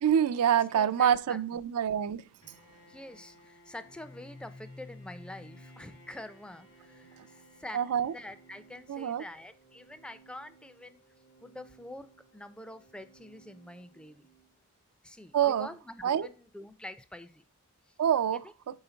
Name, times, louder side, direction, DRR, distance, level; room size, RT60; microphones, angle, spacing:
voice 1, 0.0-2.3 7.7-8.1 8.9-9.2 15.3-15.7 16.0-16.3 18.0-18.4, right 9 dB, 85° right, 0.4 m, -26 dB
voice 2, 0.5-1.4 2.9-7.8 8.1-11.0 11.4-14.3 15.0-17.4 18.3-18.4, left 1 dB, 5° left, 0.3 m, -46 dB
Bowed string instrument, 2.4-9.3, left 1 dB, 85° left, 2.1 m, -61 dB
Organ, 3.8-14.5, equal, 55° left, 0.7 m, -56 dB
5.6 x 4.3 x 3.9 m
head